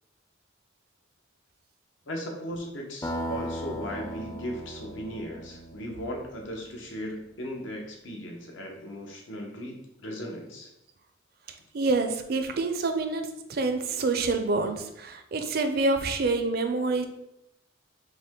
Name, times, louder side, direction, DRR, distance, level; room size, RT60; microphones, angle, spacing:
voice 1, 2.1-10.7, equal, 80° left, 1 dB, 0.9 m, -37 dB
sound 1, 3.0-6.8, equal, 20° left, 0.4 m, -37 dB
voice 2, 11.7-17.1, right 3 dB, 50° right, 6 dB, 0.5 m, -27 dB
5.7 x 2.2 x 3.7 m, 0.85 s
head